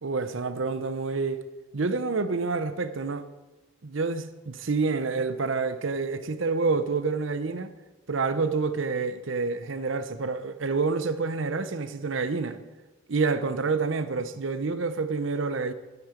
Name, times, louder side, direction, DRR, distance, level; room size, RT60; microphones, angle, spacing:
voice 1, 0.0-1.4 1.7-3.3 3.8-7.7 8.1-12.6 13.1-15.7, right 4 dB, 80° right, 0.8 m, -28 dB
11.5 x 9.5 x 5.1 m
head